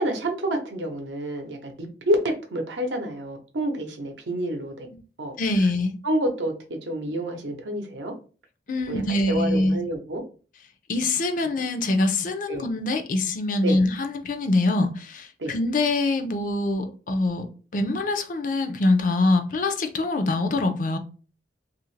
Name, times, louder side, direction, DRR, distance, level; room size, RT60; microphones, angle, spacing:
voice 1, 0.0-4.9 5.2-5.4 6.0-8.1 8.9-10.2 12.5-12.7 13.6-13.8 15.4-15.5, right 1 dB, 75° right, 0.7 m, -28 dB
voice 2, 5.4-5.9 8.7-9.8 10.9-17.5 17.7-21.0, left 2 dB, 45° left, 0.4 m, -24 dB
2.7 x 2.5 x 3.1 m
head